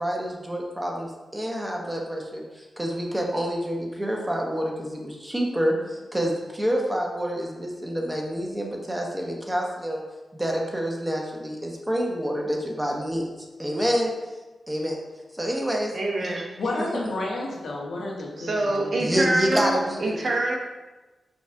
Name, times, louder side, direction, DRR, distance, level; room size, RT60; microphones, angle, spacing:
voice 1, 0.0-10.0 10.3-13.3 13.6-14.1 14.7-15.0 15.3-15.9 16.2-16.3 19.0-20.0, equal, 15° right, -1 dB, 0.7 m, -27 dB
voice 2, 15.9-16.6 18.4-20.6, right 2 dB, 60° right, -1 dB, 0.8 m, -25 dB
voice 3, 16.6-19.1, left 2 dB, 80° left, -2 dB, 0.9 m, -31 dB
5.4 x 2.3 x 3.3 m, 1.1 s
cardioid pair, 70°, 0 cm